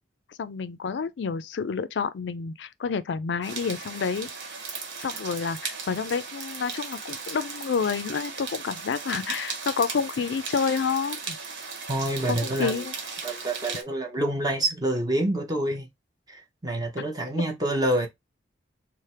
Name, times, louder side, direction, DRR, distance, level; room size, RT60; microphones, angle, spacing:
voice 1, 0.4-4.3 5.0-11.4 12.3-12.9, left 5 dB, 80° left, 0.4 m, -29 dB
sound 1, 3.4-13.8, right 5 dB, 85° right, 1.1 m, -37 dB
voice 2, 11.9-12.8 13.2-15.9 16.3-18.1, right 1 dB, 20° right, 0.8 m, -27 dB
3.3 x 2.1 x 4.2 m
head